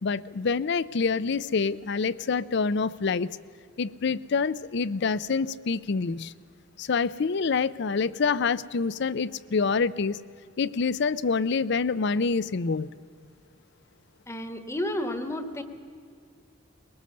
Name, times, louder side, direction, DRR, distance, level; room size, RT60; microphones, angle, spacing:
voice 1, 0.0-3.3 3.8-6.3 6.8-10.2 10.6-12.9, left 5 dB, 60° left, 16 dB, 0.5 m, -26 dB
voice 2, 14.3-15.6, left 1 dB, 15° left, 8 dB, 1.2 m, -31 dB
21.5 x 19.0 x 6.7 m, 2.3 s
head